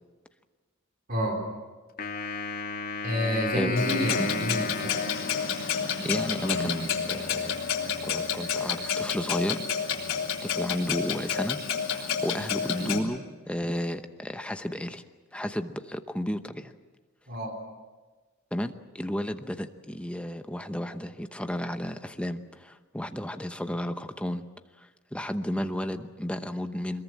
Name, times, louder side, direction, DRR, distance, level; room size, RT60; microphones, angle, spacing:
voice 1, 1.1-1.4 3.0-5.0 12.6-12.8 17.3-17.6, equal, 45° right, 3 dB, 3.8 m, -29 dB
Wind instrument woodwind instrument, 2.0-6.3, left 4 dB, 45° left, 2.5 m, -34 dB
Clock, 3.8-13.0, left 6 dB, 75° left, 3.5 m, -30 dB
voice 2, 5.8-7.6 8.0-9.6 10.4-11.6 11.9-15.0 15.3-16.7 18.5-24.4 24.8-27.0, equal, 5° left, 8 dB, 0.9 m, -33 dB
23.5 x 21.5 x 7.6 m, 1.3 s
head